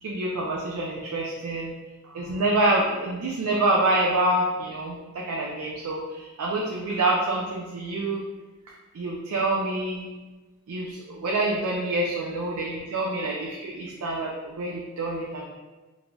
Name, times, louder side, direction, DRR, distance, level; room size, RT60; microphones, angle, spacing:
voice 1, 0.0-1.7 2.0-8.2 8.9-10.1 10.7-15.5, right 2 dB, 90° right, -2 dB, 0.4 m, -27 dB
3.1 x 2.5 x 2.2 m, 1.2 s
head